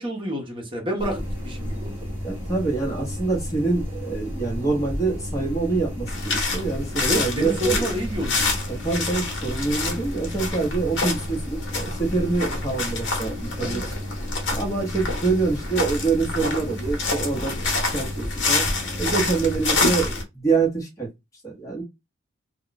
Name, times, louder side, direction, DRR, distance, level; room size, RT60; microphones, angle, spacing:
voice 1, 0.0-2.0 7.0-8.5 13.6-13.9, equal, 25° right, 0.9 m, -29 dB
sound 1, 1.0-20.2, equal, 10° right, 1.1 m, -32 dB
voice 2, 2.2-7.9 8.7-13.8 14.5-18.6 19.0-21.1 21.4-21.8, right 4 dB, 15° left, 1.1 m, -26 dB
sound 2, 6.1-20.2, left 3 dB, 65° left, 1.0 m, -28 dB
2.4 x 2.3 x 3.7 m
head